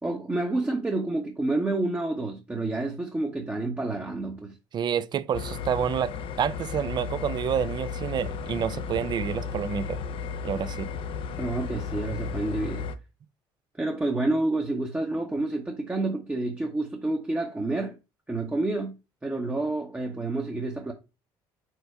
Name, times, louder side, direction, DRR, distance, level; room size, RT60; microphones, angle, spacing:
voice 1, 0.0-4.5 11.4-12.8 13.8-18.0 18.3-18.9 19.2-20.9, right 2 dB, 15° right, 0.8 m, -29 dB
voice 2, 4.7-6.1 6.4-10.0 10.4-10.9, right 8 dB, 40° right, 0.4 m, -28 dB
sound 1, 5.3-13.0, left 6 dB, 55° left, 0.5 m, -34 dB
4.6 x 2.1 x 4.5 m
supercardioid pair, 75°, 11 cm